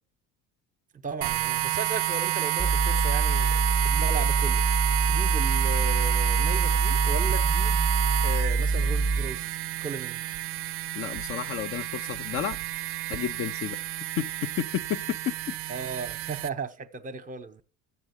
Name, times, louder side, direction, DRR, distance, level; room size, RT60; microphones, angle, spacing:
voice 1, 1.0-4.6 5.1-7.9 8.2-10.2 15.7-17.6, right 4 dB, 25° right, 0.9 m, -36 dB
sound 1, 1.2-16.5, right 15 dB, 40° right, 0.5 m, -30 dB
sound 2, 2.6-9.4, right 3 dB, 5° left, 0.9 m, -25 dB
voice 2, 10.9-12.6 13.1-13.8 14.2-15.5, left 10 dB, 40° left, 0.4 m, -31 dB
7.3 x 7.1 x 8.1 m
cardioid pair, 120°, 34 cm